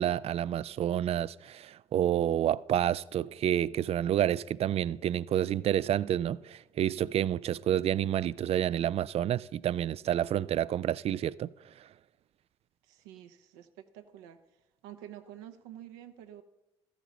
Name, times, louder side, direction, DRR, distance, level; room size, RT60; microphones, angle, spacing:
voice 1, 0.0-11.5, right 11 dB, 45° right, 0.4 m, -29 dB
voice 2, 12.8-14.4 14.8-16.4, right 11 dB, 75° right, 0.8 m, -48 dB
14.0 x 10.5 x 4.0 m
hypercardioid pair, 50°, 14 cm